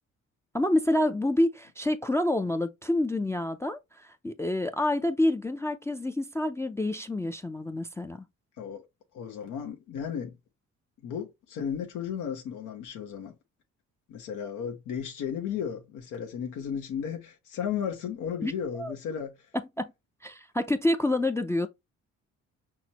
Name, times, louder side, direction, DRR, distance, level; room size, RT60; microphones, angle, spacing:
voice 1, 0.5-8.3 18.4-18.5 18.8-18.9 19.5-19.9 20.2-21.7, left 1 dB, 10° left, 0.3 m, -28 dB
voice 2, 9.1-10.4 11.0-13.3 14.1-19.3, left 8 dB, 85° left, 1.0 m, -34 dB
6.0 x 2.1 x 2.8 m
cardioid pair, 90°, 30 cm